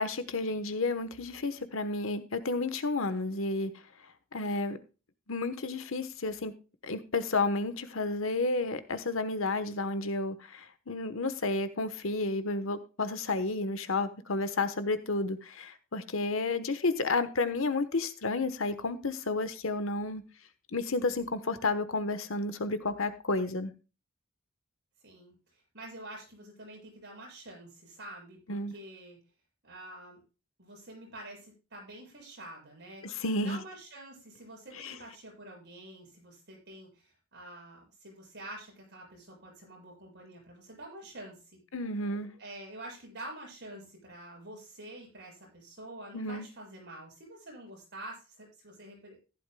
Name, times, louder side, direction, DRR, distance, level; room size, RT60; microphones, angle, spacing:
voice 1, 0.0-3.7 4.3-4.8 5.3-6.5 6.8-20.2 20.7-23.7 28.5-28.7 33.0-33.6 34.7-34.9 41.7-42.3 46.1-46.4, left 3 dB, 65° left, 1.1 m, -31 dB
voice 2, 25.0-29.2 29.6-30.2 30.6-33.1 33.4-41.6 42.4-49.2, right 1 dB, 55° right, 7.3 m, -47 dB
15.0 x 11.5 x 2.3 m
head